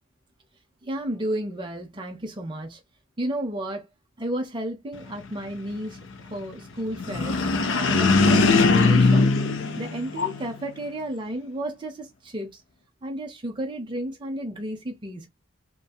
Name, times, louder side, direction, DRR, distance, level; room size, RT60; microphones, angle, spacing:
voice 1, 0.8-2.8 3.2-3.9 4.2-6.0 6.3-7.4 7.7-9.3 9.8-12.6 13.0-15.3, right 1 dB, 20° right, 0.5 m, -32 dB
sound 1, 7.0-10.6, left 3 dB, 55° left, 0.5 m, -20 dB
2.6 x 2.5 x 2.2 m
head